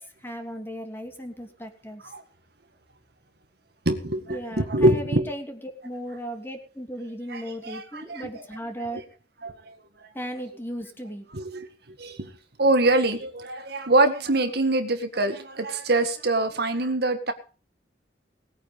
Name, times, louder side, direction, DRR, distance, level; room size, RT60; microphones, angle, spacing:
voice 1, 0.2-2.0 4.3-5.6 5.8-9.0 10.1-11.2, equal, 15° left, 2.9 m, -36 dB
voice 2, 3.9-5.3 7.3-8.4 8.8-9.0 9.4-9.5 11.3-11.7 12.0-12.3 12.6-17.3, right 2 dB, 65° right, 1.9 m, -24 dB
19.5 x 9.4 x 5.3 m
head